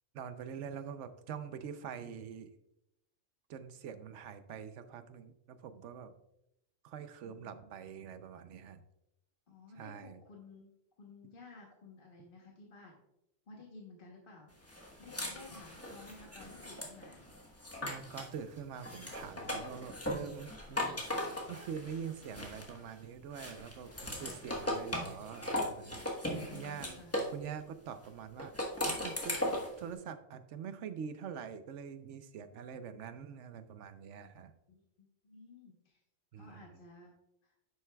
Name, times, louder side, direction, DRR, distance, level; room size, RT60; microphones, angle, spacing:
voice 1, 0.1-2.5 3.5-6.1 6.8-8.8 9.8-10.2 17.8-21.0 21.5-26.2 26.5-26.9 27.3-28.5 28.8-29.4 29.8-34.5 36.3-36.7, right 7 dB, 80° right, 11 dB, 1.0 m, -45 dB
voice 2, 7.2-7.7 9.5-10.7 11.0-13.0 13.5-14.5 15.0-17.2 26.2-27.1 34.7-36.0 36.4-37.1 37.4-37.5, left 3 dB, 50° left, 0 dB, 1.2 m, -54 dB
sound 1, 14.7-18.3 18.8-22.9 23.3-27.4 28.4-29.8, left 1 dB, 15° left, 1.1 m, -38 dB
9.9 x 7.7 x 2.3 m, 0.84 s
omnidirectional pair, 1.2 m